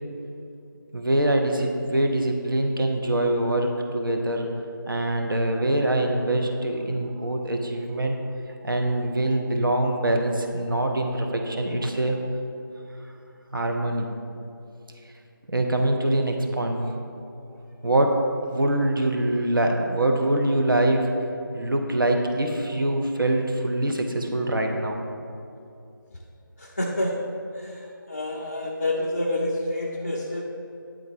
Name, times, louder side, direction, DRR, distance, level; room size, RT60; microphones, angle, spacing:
voice 1, 0.9-4.5 4.9-8.2 8.6-12.2 13.5-14.1 15.5-16.9 17.8-18.2 18.5-21.2 21.5-25.0, right 1 dB, 70° right, 2 dB, 0.8 m, -24 dB
voice 2, 26.6-27.2 27.5-27.8 28.1-30.5, left 1 dB, 30° left, -3 dB, 0.4 m, -28 dB
8.9 x 3.9 x 4.6 m, 2.7 s
figure-of-eight pair, 165°, 12 cm